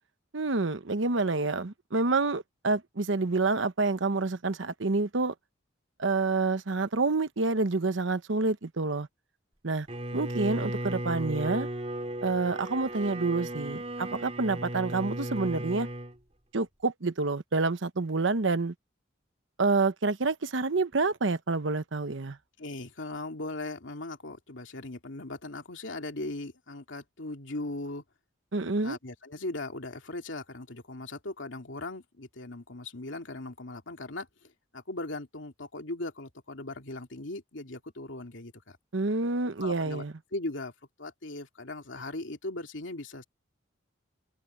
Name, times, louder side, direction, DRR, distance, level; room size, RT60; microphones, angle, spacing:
voice 1, 0.3-5.3 6.0-9.1 9.6-9.9 10.1-11.7 12.2-15.9 16.5-18.7 19.6-22.4 28.5-29.0 38.9-40.1, right 3 dB, 75° right, 0.9 m, -28 dB
Bowed string instrument, 9.9-16.2, right 1 dB, 35° right, 2.9 m, -35 dB
voice 2, 22.6-28.0 28.8-38.8 39.6-40.0 40.3-40.7 41.0-43.2, left 2 dB, 80° left, 2.6 m, -39 dB
head